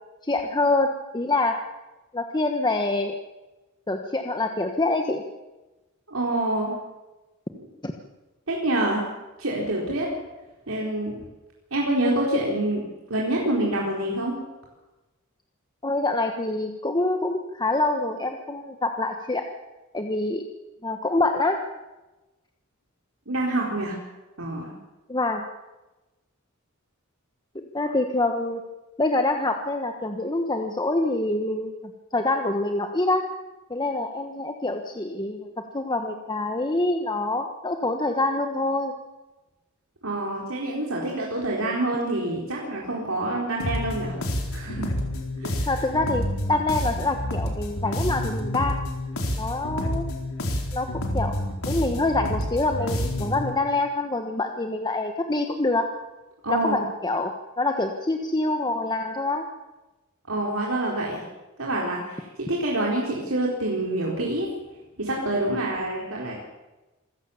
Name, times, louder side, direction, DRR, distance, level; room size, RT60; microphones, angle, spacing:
voice 1, 0.2-1.6 2.1-3.2 3.9-5.2 7.8-7.9 15.8-19.5 19.9-20.4 20.8-21.6 25.1-25.4 27.5-28.6 29.0-33.3 33.7-38.9 45.7-48.8 49.4-50.1 50.7-51.3 51.6-55.9 56.5-59.4, left 2 dB, 20° left, 4 dB, 1.4 m, -26 dB
voice 2, 6.1-6.8 7.5-7.7 8.5-9.1 9.4-10.1 10.7-11.1 11.7-12.8 13.1-14.3 23.3-24.0 24.4-24.7 40.0-44.2 44.5-44.9 45.4-45.5 56.4-56.8 60.3-61.2 61.6-64.5 65.0-66.4, right 1 dB, 75° right, -3 dB, 4.3 m, -26 dB
sound 1, 43.6-53.5, left 1 dB, 90° left, 4.4 m, -29 dB
26.5 x 16.0 x 7.2 m, 1.1 s
head